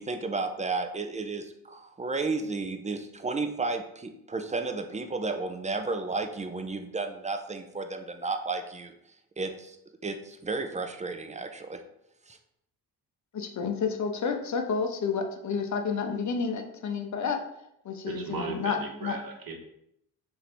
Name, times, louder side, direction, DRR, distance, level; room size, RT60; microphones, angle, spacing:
voice 1, 0.0-8.9 9.4-9.8 10.0-11.8 12.3-12.4, right 3 dB, 15° right, 6 dB, 0.4 m, -33 dB
voice 2, 13.3-17.4 17.8-19.2, left 5 dB, 40° left, 5 dB, 0.7 m, -30 dB
voice 3, 18.0-19.5, right 3 dB, 50° right, 2 dB, 1.1 m, -36 dB
3.1 x 2.7 x 4.2 m, 0.77 s
hypercardioid pair, 45°, 46 cm